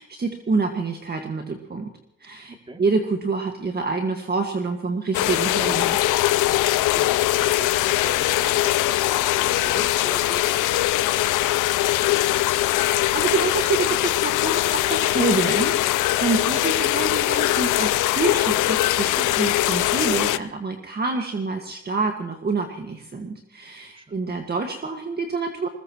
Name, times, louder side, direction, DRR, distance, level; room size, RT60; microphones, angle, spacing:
voice 1, 0.0-1.9 2.2-6.0 12.8-25.7, right 4 dB, 35° right, 4 dB, 1.8 m, -27 dB
sound 1, 5.1-20.4, left 15 dB, 90° left, 0.6 m, -21 dB
voice 2, 6.9-12.2 23.9-24.2, right 2 dB, 15° right, 4 dB, 2.6 m, -42 dB
21.0 x 20.5 x 3.1 m, 0.81 s
cardioid pair, 90°, 30 cm